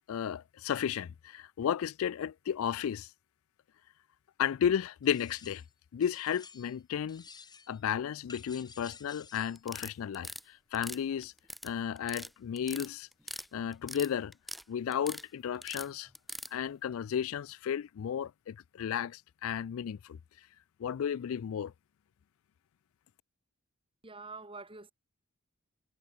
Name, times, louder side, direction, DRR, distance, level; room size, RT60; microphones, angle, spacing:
voice 1, 0.1-3.1 4.4-5.6 5.9-7.2 7.7-11.3 11.6-13.1 13.5-14.3 14.7-16.1 16.5-20.2 20.8-21.7, left 8 dB, 70° left, 0.3 m, -33 dB
sound 1, 5.0-5.7 6.0-6.8 7.1-7.8 8.3-9.6, left 5 dB, 20° left, 3.8 m, -53 dB
sound 2, 9.6-10.4 10.7-11.7 12.0-12.3 12.6-13.5 13.7-14.6 14.9-15.2 15.6-16.5, equal, ahead, 2.4 m, -42 dB
voice 2, 24.0-24.9, right 3 dB, 25° right, 3.4 m, -46 dB
head